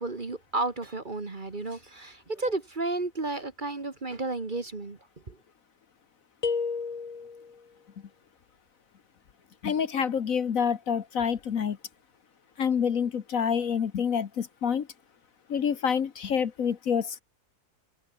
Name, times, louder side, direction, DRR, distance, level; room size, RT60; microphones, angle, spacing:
voice 1, 0.0-5.0 5.3-5.4, right 2 dB, 30° right, 1.7 m, -32 dB
sound 1, 6.4-7.6, left 5 dB, 30° left, 0.9 m, -31 dB
voice 2, 9.6-11.8 12.6-14.9 15.5-17.2, left 7 dB, 60° left, 1.5 m, -27 dB
omnidirectional pair, 1.7 m